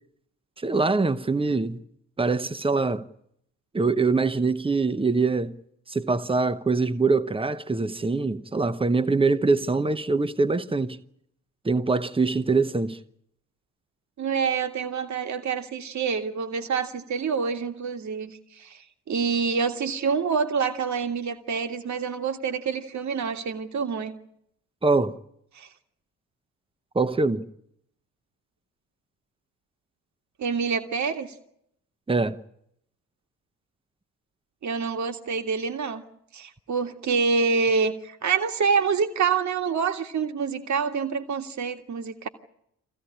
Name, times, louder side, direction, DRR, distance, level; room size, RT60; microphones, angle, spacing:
voice 1, 0.6-1.8 2.2-3.1 3.7-5.5 5.9-11.0 11.6-13.0 24.8-25.2 26.9-27.4 32.1-32.4, right 3 dB, 10° right, 1.2 m, -23 dB
voice 2, 14.2-24.1 25.6-25.7 30.4-31.3 34.6-36.0 36.3-42.3, right 5 dB, 40° right, 2.0 m, -27 dB
24.5 x 16.0 x 10.0 m
figure-of-eight pair, 45°, 43 cm